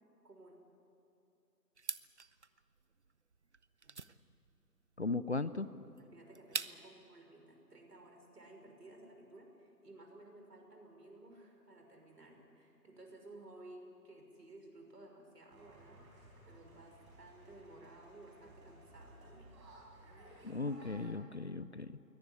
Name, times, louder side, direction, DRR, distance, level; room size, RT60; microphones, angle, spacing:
sound 1, 1.8-7.0, right 4 dB, 45° right, 0.6 m, -45 dB
voice 1, 5.0-5.7 20.4-22.0, left 3 dB, 45° left, 15 dB, 0.6 m, -37 dB
voice 2, 6.0-19.5, right 2 dB, 70° right, 2 dB, 6.0 m, -56 dB
sound 2, 15.5-21.1, right 1 dB, 15° right, 4.3 m, -58 dB
23.0 x 18.0 x 9.7 m, 2.8 s
figure-of-eight pair, 160°, 49 cm